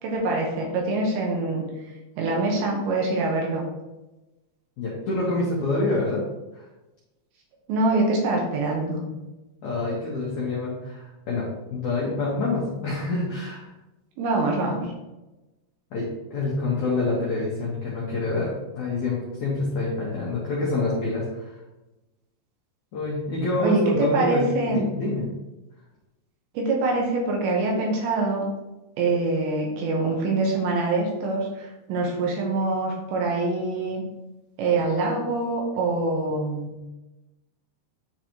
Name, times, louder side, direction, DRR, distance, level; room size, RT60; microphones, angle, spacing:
voice 1, 0.0-1.7 2.2-3.7 7.7-9.0 14.2-14.9 23.6-24.9 26.5-28.4 29.0-34.0 34.6-36.7, right 2 dB, 80° right, 0 dB, 3.3 m, -24 dB
voice 2, 4.8-6.2 9.6-11.4 11.7-13.7 15.9-21.5 22.9-25.3, left 2 dB, 65° left, -5 dB, 1.8 m, -27 dB
10.5 x 3.9 x 3.1 m, 1.0 s
omnidirectional pair, 5.2 m